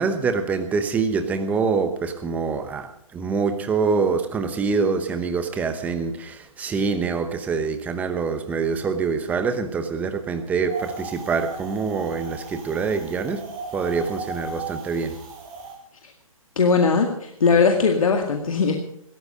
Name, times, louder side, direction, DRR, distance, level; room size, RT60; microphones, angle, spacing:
voice 1, 0.0-15.2, right 5 dB, 10° right, 9 dB, 1.0 m, -25 dB
Wind, 10.7-15.8, right 4 dB, 25° right, 5.0 m, -37 dB
voice 2, 16.6-18.8, left 5 dB, 70° left, 3 dB, 2.1 m, -19 dB
17.0 x 13.5 x 5.2 m, 0.70 s
hypercardioid pair, 150°, 18 cm